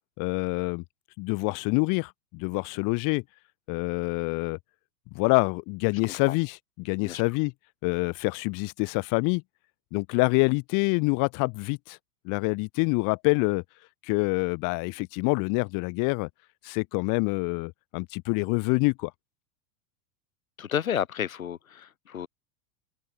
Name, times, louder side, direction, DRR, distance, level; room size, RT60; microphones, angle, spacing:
voice 1, 0.2-0.8 1.2-3.2 3.7-4.6 5.1-7.5 7.8-9.4 9.9-12.0 12.2-13.6 14.1-16.3 16.6-19.1, left 30 dB, 50° left, 3.7 m, -26 dB
voice 2, 20.6-22.3, left 9 dB, 90° left, 7.5 m, -31 dB
open air
hypercardioid pair, 110°, 40 cm